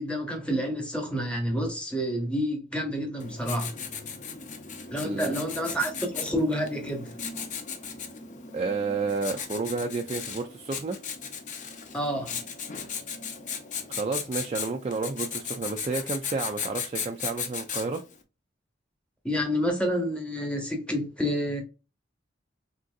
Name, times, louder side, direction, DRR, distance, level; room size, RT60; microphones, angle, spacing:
voice 1, 0.0-3.7 4.9-7.1 11.9-12.4 19.2-21.6, equal, 5° left, 0.9 m, -29 dB
Writing, 3.2-18.1, left 6 dB, 40° left, 0.6 m, -36 dB
voice 2, 5.0-5.4 8.5-11.0 13.9-18.0, right 3 dB, 30° right, 0.3 m, -31 dB
3.5 x 2.6 x 2.3 m
head